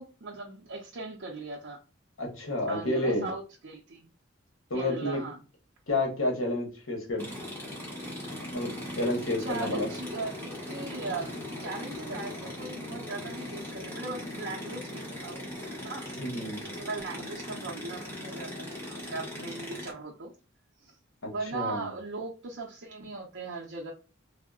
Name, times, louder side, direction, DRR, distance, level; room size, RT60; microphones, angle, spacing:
voice 1, 0.0-1.8 2.7-4.1 4.7-5.4 9.4-15.5 15.8-16.2 16.6-20.3 20.8-21.0 21.3-23.9, right 3 dB, 60° right, -2 dB, 0.5 m, -39 dB
voice 2, 2.2-3.3 4.7-5.2 5.9-7.2 8.5-8.7 9.0-9.9 16.2-16.6 21.5-21.9, left 1 dB, 80° left, 1 dB, 1.0 m, -29 dB
sound 1, 7.2-19.9, left 1 dB, 10° left, 0.9 m, -39 dB
3.5 x 2.0 x 2.3 m, 0.33 s
head